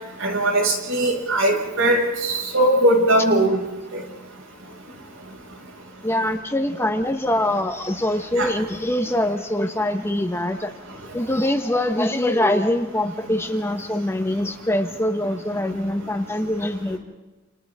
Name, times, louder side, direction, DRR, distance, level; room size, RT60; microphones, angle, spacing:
voice 1, 0.2-3.6 3.9-4.0 8.3-8.5, right 1 dB, 80° right, 0 dB, 6.9 m, -20 dB
voice 2, 6.0-10.7 11.1-17.0, left 1 dB, 10° left, 5 dB, 1.5 m, -23 dB
29.0 x 29.0 x 3.8 m, 1.1 s
head